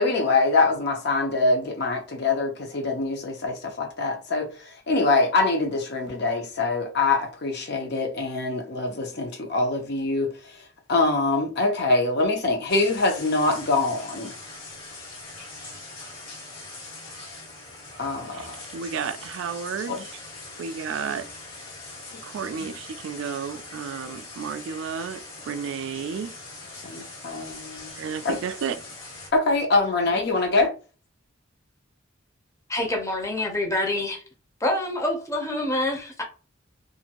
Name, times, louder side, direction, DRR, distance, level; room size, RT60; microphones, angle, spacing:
voice 1, 0.0-10.6 10.9-14.3 18.0-18.6 19.9-20.0 26.8-27.9 28.2-28.3 29.3-30.7, left 3 dB, 55° left, 0.8 m, -24 dB
sound 1, 12.7-29.3, left 3 dB, 75° left, 1.4 m, -42 dB
voice 2, 18.3-20.2 20.6-21.3 22.2-26.4 26.8-26.9 27.9-28.8, right 6 dB, 65° right, 0.3 m, -32 dB
voice 3, 32.7-34.2 34.6-36.2, left 1 dB, 15° left, 0.7 m, -26 dB
2.6 x 2.5 x 2.8 m
head